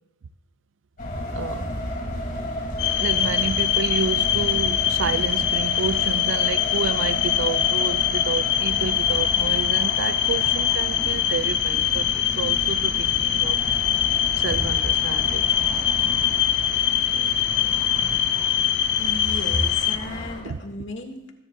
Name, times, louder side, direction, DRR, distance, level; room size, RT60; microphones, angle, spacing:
sound 1, 1.0-20.4, left 1 dB, 45° left, 4.0 m, -33 dB
voice 1, 1.3-1.7 3.0-13.6 14.4-15.5 20.4-20.6, right 5 dB, 80° right, 0.4 m, -30 dB
sound 2, 2.8-20.0, left 10 dB, 60° left, 0.6 m, -23 dB
voice 2, 19.0-21.3, left 1 dB, 85° left, 1.9 m, -32 dB
25.0 x 10.0 x 2.3 m
head